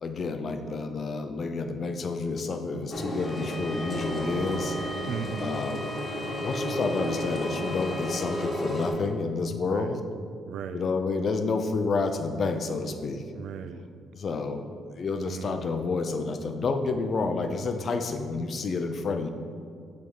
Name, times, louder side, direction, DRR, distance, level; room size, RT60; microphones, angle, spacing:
voice 1, 0.0-4.8 5.4-5.9 6.4-10.0 10.7-13.2 14.1-19.3, left 4 dB, 50° left, 7 dB, 0.5 m, -29 dB
Engine, 2.9-8.9, equal, 30° left, 1.6 m, -33 dB
Bowed string instrument, 3.2-8.5, left 2 dB, ahead, 0.6 m, -40 dB
voice 2, 5.0-5.6 9.6-10.0 10.5-10.9 13.4-13.9 15.2-15.7, right 7 dB, 75° right, 11 dB, 0.3 m, -37 dB
7.5 x 3.5 x 4.7 m, 2.2 s
cardioid pair, 90°, 0 cm